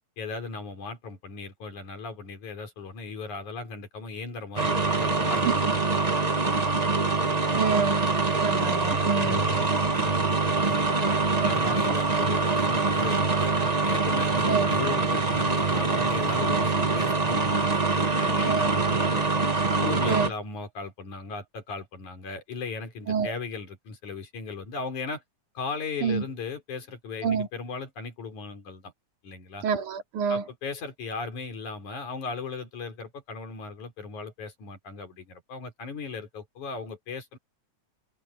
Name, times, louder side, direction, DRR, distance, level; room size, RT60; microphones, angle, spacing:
voice 1, 0.2-6.1 6.6-6.7 9.2-11.2 11.4-19.3 19.8-25.2 25.6-28.9 29.2-29.6 30.3-37.4, left 4 dB, 80° left, 5.6 m, -37 dB
sound 1, 4.6-20.3, right 3 dB, 50° right, 0.4 m, -24 dB
voice 2, 5.5-5.8 7.6-8.0 8.4-9.4 11.4-11.7 14.5-14.7 18.4-18.7 20.1-20.3 23.1-23.3 26.0-26.2 27.2-27.5 29.6-30.4, right 6 dB, 90° right, 4.5 m, -27 dB
omnidirectional pair, 3.4 m